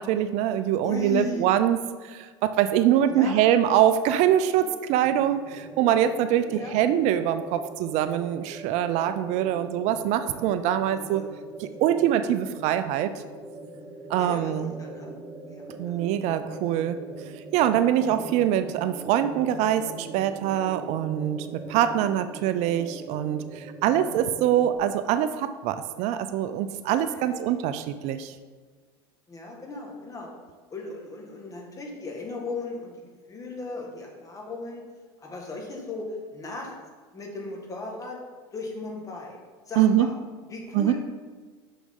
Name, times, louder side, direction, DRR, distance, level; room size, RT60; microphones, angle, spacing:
voice 1, 0.0-11.2 11.6-13.1 14.1-14.7 15.8-17.0 17.2-28.3 39.8-40.1 40.7-40.9, right 11 dB, 55° right, 11 dB, 0.4 m, -24 dB
voice 2, 0.8-1.5 3.1-3.5 4.5-4.8 6.5-6.8 10.2-10.3 11.1-11.2 11.6-11.7 14.2-15.2 15.5-16.0 17.9-18.1 27.0-27.7 29.3-30.3 30.7-33.0 33.3-34.8 35.2-36.7 37.1-38.2 38.5-40.1 40.5-40.9, left 3 dB, 25° left, 0 dB, 1.7 m, -37 dB
sound 1, 5.0-24.8, right 2 dB, 10° right, 0.9 m, -41 dB
6.6 x 6.2 x 3.7 m, 1.5 s
supercardioid pair, 110°, 14 cm